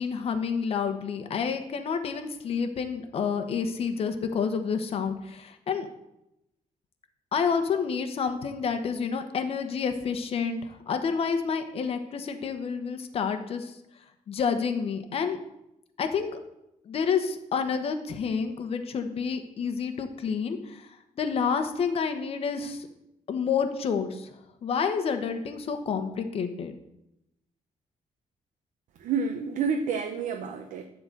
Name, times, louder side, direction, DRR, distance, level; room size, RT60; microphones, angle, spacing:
voice 1, 0.0-5.9 7.3-13.8 14.3-15.4 16.0-16.4 16.9-20.9 21.2-22.9 23.3-24.3 24.6-26.7, left 6 dB, 50° left, 7 dB, 1.0 m, -29 dB
voice 2, 29.0-30.8, right 5 dB, 80° right, 5 dB, 0.8 m, -29 dB
12.0 x 3.9 x 7.6 m, 0.86 s
cardioid pair, 160°, 13 cm